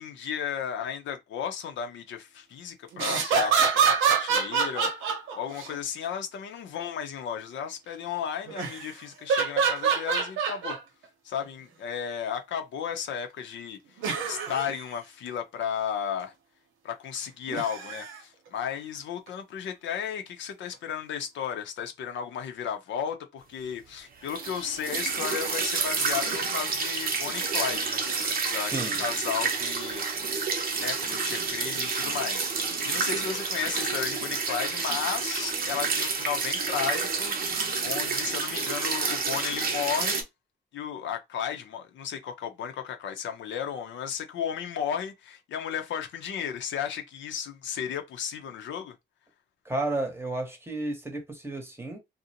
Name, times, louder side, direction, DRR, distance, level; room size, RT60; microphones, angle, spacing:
voice 1, 0.0-10.8 11.2-16.3 16.8-28.1 28.5-30.4 30.7-40.3 40.7-48.9, left 8 dB, 70° left, 0.6 m, -34 dB
sound 1, 2.9-5.7 8.5-8.9 9.3-10.8 11.4-11.5 14.0-14.7 17.5-18.2 19.3-19.4, right 6 dB, 85° right, 0.8 m, -26 dB
sound 2, 24.3-40.2, right 4 dB, 50° right, 0.7 m, -29 dB
voice 2, 28.6-29.0 49.6-52.0, right 2 dB, 10° right, 0.9 m, -32 dB
2.5 x 2.1 x 2.8 m
cardioid pair, 90°, 20 cm